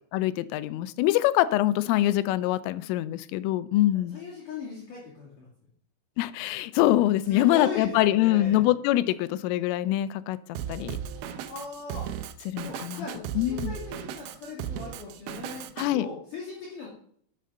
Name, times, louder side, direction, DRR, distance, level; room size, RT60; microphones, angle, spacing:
voice 1, 0.1-4.2 6.2-10.4 10.7-11.0 12.5-13.1 13.4-13.7 15.8-16.1, left 14 dB, 90° left, 16 dB, 3.2 m, -24 dB
voice 2, 4.1-5.5 7.3-8.7 11.1-12.1 12.6-16.9, left 4 dB, 45° left, -7 dB, 3.5 m, -39 dB
Drum kit, 10.6-15.9, right 9 dB, 85° right, 2.5 m, -36 dB
11.5 x 7.8 x 5.5 m, 0.62 s
omnidirectional pair, 5.7 m